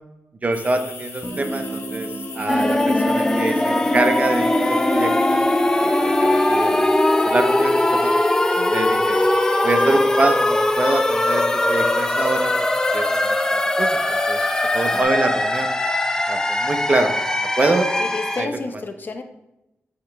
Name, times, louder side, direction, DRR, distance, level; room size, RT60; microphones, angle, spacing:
voice 1, 0.4-2.1 2.3-5.4 5.8-6.9 7.2-8.1 8.7-9.2 9.6-12.5 12.9-14.4 14.7-15.7 16.3-17.1 17.6-17.9 18.4-18.5, right 2 dB, 35° right, 7 dB, 0.9 m, -25 dB
sound 1, 0.5-15.0, left 4 dB, 80° left, 1.3 m, -38 dB
Guitar, 1.2-6.8, right 2 dB, 5° right, 0.9 m, -36 dB
sound 2, 2.5-18.5, left 1 dB, 15° left, 0.5 m, -20 dB
voice 2, 18.0-19.2, left 3 dB, 50° left, 6 dB, 0.9 m, -31 dB
7.9 x 6.3 x 3.5 m, 0.91 s
wide cardioid pair, 120°, 4 cm